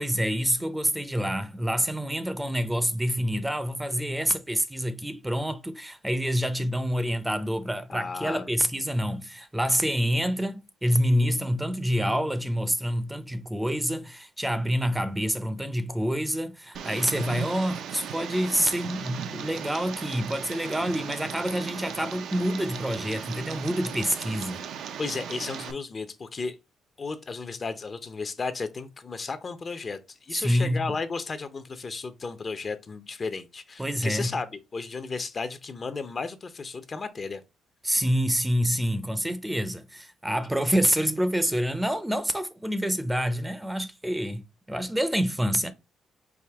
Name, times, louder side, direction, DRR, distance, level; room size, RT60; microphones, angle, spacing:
voice 1, 0.0-24.6 30.3-30.9 33.8-34.3 37.8-45.7, equal, 10° right, 0.5 m, -27 dB
voice 2, 7.9-8.5 25.0-26.6 27.0-37.4, left 4 dB, 40° left, 0.6 m, -34 dB
Tick, 16.7-25.7, right 8 dB, 75° right, 0.5 m, -37 dB
4.9 x 2.6 x 3.5 m
cardioid pair, 90°, 0 cm